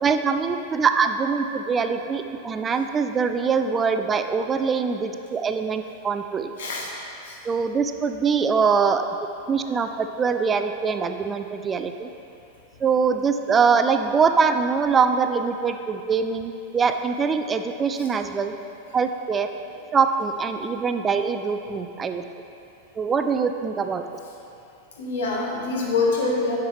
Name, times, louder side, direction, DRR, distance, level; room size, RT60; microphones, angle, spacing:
voice 1, 0.0-6.5 7.4-9.0 9.5-12.1 12.8-18.5 18.9-19.5 19.9-22.2 23.0-24.0, right 5 dB, 20° right, 7 dB, 0.3 m, -23 dB
voice 2, 6.6-6.9 7.2-7.4 25.0-26.6, left 3 dB, 60° left, -2 dB, 1.2 m, -25 dB
8.9 x 5.8 x 3.4 m, 2.7 s
figure-of-eight pair, 90°, 0 cm